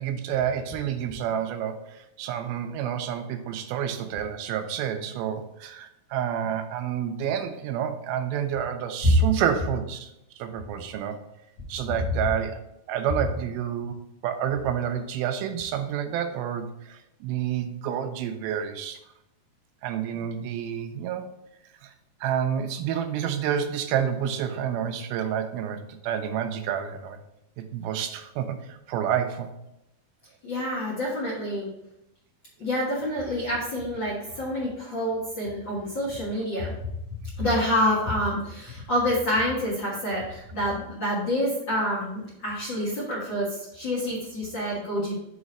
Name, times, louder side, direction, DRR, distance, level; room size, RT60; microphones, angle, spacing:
voice 1, 0.0-10.1 10.4-11.2 11.7-12.6 12.9-14.0 14.2-19.0 19.8-21.3 21.8-21.9 22.2-27.2 27.6-29.5 36.7-36.8, right 9 dB, 90° right, 7 dB, 2.5 m, -29 dB
voice 2, 30.4-31.7 32.6-36.7 37.4-45.2, equal, 50° left, -6 dB, 1.5 m, -27 dB
6.2 x 4.1 x 4.9 m, 0.85 s
omnidirectional pair, 4.2 m